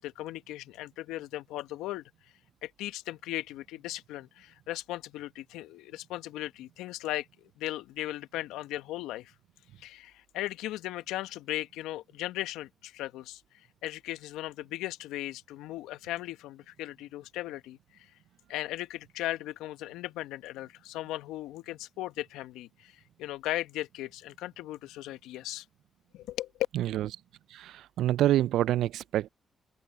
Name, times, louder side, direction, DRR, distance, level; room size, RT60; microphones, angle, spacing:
voice 1, 0.0-2.1 2.6-9.3 9.8-13.4 13.8-18.1 18.5-25.6 26.1-26.5, left 15 dB, 80° left, 1.3 m, -37 dB
voice 2, 26.7-27.1 27.5-29.3, right 13 dB, 75° right, 0.3 m, -27 dB
open air
hypercardioid pair, 45°, 0 cm